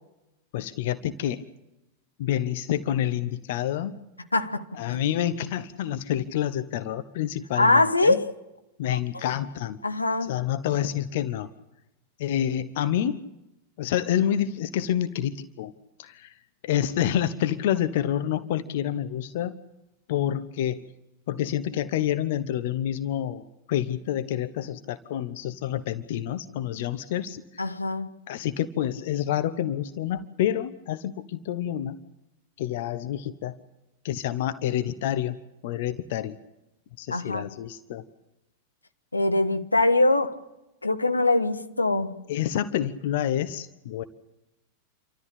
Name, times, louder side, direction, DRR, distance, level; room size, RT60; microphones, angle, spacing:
voice 1, 0.5-1.4 2.2-4.0 4.7-8.2 8.8-9.8 10.2-11.5 12.2-13.2 13.8-15.7 16.0-16.3 16.6-19.5 20.1-20.8 21.3-23.4 23.7-27.6 28.3-32.0 32.6-33.6 34.0-35.4 35.6-36.4 37.0-38.0 42.3-44.0, left 11 dB, 55° left, 12 dB, 1.1 m, -28 dB
voice 2, 4.3-5.1 7.6-8.3 9.8-10.3 27.6-28.1 37.1-37.5 39.1-40.4 40.8-42.3, left 2 dB, 80° left, 8 dB, 1.3 m, -23 dB
28.5 x 13.5 x 8.7 m, 0.96 s
figure-of-eight pair, 90°, 0 cm